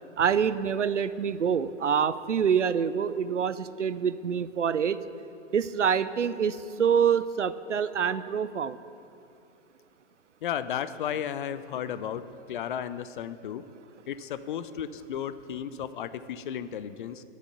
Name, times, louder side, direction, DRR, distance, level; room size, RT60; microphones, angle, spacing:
voice 1, 0.2-5.0 5.5-8.8, right 7 dB, 90° right, 15 dB, 0.5 m, -26 dB
voice 2, 10.4-13.6 14.1-17.2, left 9 dB, 45° left, 13 dB, 0.5 m, -34 dB
11.0 x 6.6 x 6.7 m, 2.7 s
figure-of-eight pair, 115°, 35 cm